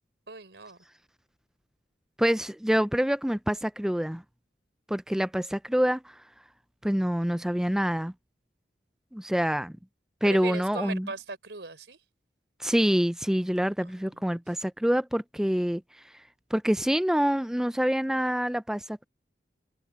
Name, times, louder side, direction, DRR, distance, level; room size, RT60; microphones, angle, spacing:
voice 1, 0.3-0.8 10.3-12.0 13.8-14.3, right 3 dB, 85° right, 4.0 m, -39 dB
voice 2, 2.2-4.2 4.9-6.1 6.8-8.1 9.1-9.7 10.2-11.1 12.6-15.8 16.5-19.0, equal, 5° right, 0.4 m, -26 dB
head